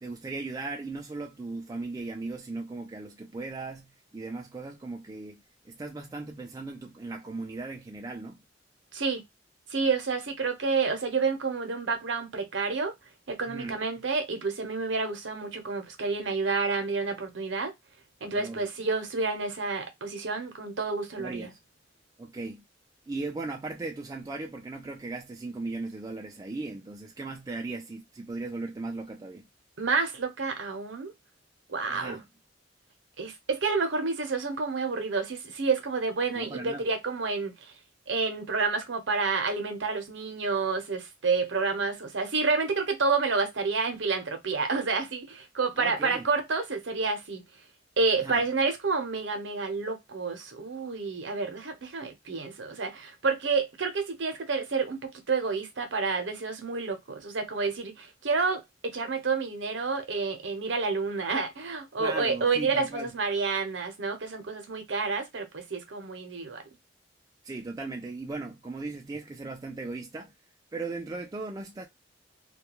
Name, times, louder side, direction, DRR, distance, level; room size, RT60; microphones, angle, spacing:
voice 1, 0.0-8.4 13.5-13.8 18.3-18.7 21.2-21.6 22.2-22.6 23.1-29.5 31.9-32.2 36.3-36.9 45.8-46.3 48.2-48.4 62.0-63.1 67.4-70.3 70.7-71.9, right 3 dB, 20° right, 0.3 m, -37 dB
voice 2, 9.7-12.9 13.3-17.7 18.2-21.5 29.8-31.1 31.7-32.2 33.2-37.7 38.1-47.4 48.0-66.6, right 4 dB, 75° right, 0.7 m, -29 dB
2.3 x 2.3 x 2.8 m
head